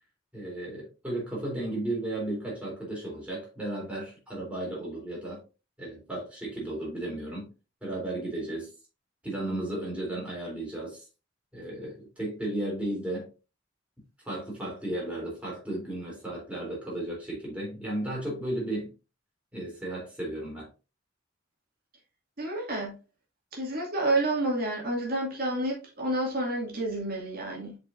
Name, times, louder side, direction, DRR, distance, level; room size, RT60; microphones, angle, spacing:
voice 1, 0.3-5.4 5.8-7.5 7.8-8.7 9.2-11.1 11.5-13.3 14.2-18.9 19.5-20.7, right 1 dB, 5° right, 3.5 m, -34 dB
voice 2, 22.4-22.9 23.5-27.8, right 1 dB, 50° right, 2.5 m, -29 dB
7.6 x 5.2 x 2.6 m
head